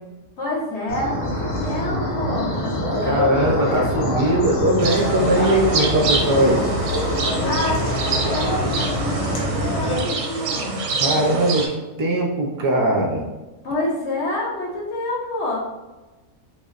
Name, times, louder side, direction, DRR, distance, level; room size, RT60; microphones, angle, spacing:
voice 1, 0.4-3.9 7.4-10.8 13.6-15.6, left 2 dB, 60° left, -5 dB, 1.3 m, -28 dB
sound 1, 0.9-10.0, left 1 dB, 85° left, 1.3 m, -24 dB
voice 2, 3.0-6.6 11.0-13.2, right 1 dB, 30° right, 0 dB, 0.3 m, -20 dB
sound 2, 4.8-11.7, right 4 dB, 85° right, 1.0 m, -27 dB
5.4 x 2.1 x 2.5 m, 1.1 s
omnidirectional pair, 1.3 m